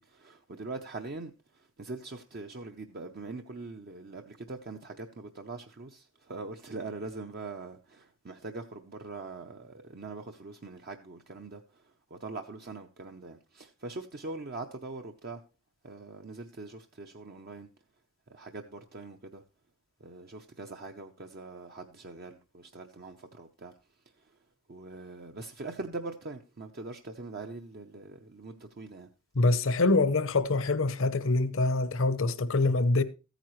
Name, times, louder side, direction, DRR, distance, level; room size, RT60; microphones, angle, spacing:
voice 1, 0.0-15.4 15.8-17.7 18.3-19.4 20.0-23.7 24.7-29.1, right 3 dB, 45° right, 0.7 m, -42 dB
voice 2, 29.4-33.0, left 2 dB, 65° left, 0.7 m, -25 dB
14.5 x 9.1 x 3.1 m
head